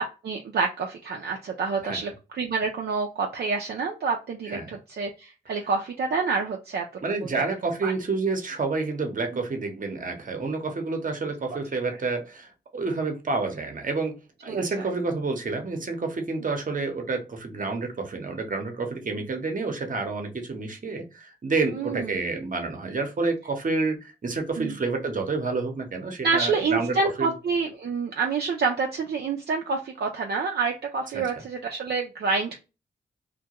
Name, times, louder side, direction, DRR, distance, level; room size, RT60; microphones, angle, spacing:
voice 1, 0.2-6.9 7.2-7.4 7.8-7.9 14.5-14.9 21.7-22.2 24.6-24.8 26.2-32.6, right 4 dB, 65° right, 1 dB, 0.5 m, -28 dB
voice 2, 7.0-27.3 31.1-31.2, right 3 dB, 45° right, 5 dB, 0.9 m, -29 dB
2.2 x 2.2 x 2.8 m, 0.29 s
supercardioid pair, 40°, 18 cm